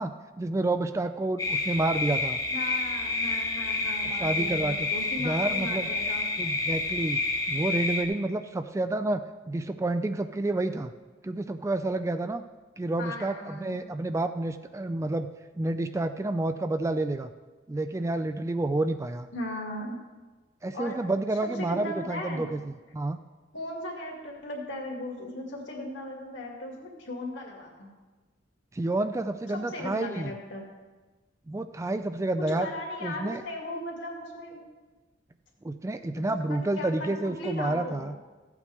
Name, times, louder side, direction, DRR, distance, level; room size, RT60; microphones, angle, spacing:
voice 1, 0.0-2.4 4.0-4.9 5.2-5.9 6.4-7.2 7.5-10.9 11.2-12.4 12.8-15.3 15.6-17.3 17.7-19.3 20.6-23.2 28.7-30.3 31.5-32.7 33.0-33.4 35.6-38.2, right 2 dB, 15° right, 9 dB, 0.3 m, -29 dB
sound 1, 1.4-8.0, left 3 dB, 20° left, 1.0 m, -29 dB
voice 2, 2.5-6.2 13.0-13.8 19.3-20.0 20.7-21.0 21.4-22.5 23.5-27.9 29.5-30.6 32.4-34.6 36.4-38.1, left 1 dB, 70° left, 0 dB, 2.3 m, -37 dB
15.0 x 8.2 x 3.5 m, 1.2 s
head